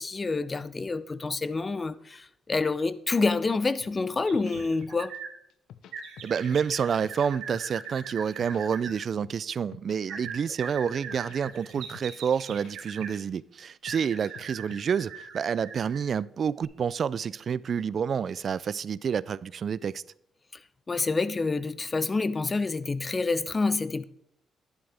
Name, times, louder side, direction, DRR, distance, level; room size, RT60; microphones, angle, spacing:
voice 1, 0.0-5.1 20.9-24.0, left 3 dB, 30° left, 0.6 m, -28 dB
sound 1, 3.8-5.2 5.5-6.6 6.9-7.9 8.2-10.0 10.2-10.6 10.9-12.7 13.0-13.4 13.7-14.8, left 9 dB, 75° left, 0.7 m, -49 dB
sound 2, 4.2-5.3 5.9-8.9 10.1-13.2 13.8-16.1 16.6-16.7, right 6 dB, 90° right, 1.6 m, -41 dB
voice 2, 6.2-20.0, right 7 dB, 50° right, 0.3 m, -29 dB
11.0 x 10.5 x 3.4 m
cardioid pair, 90°, 0 cm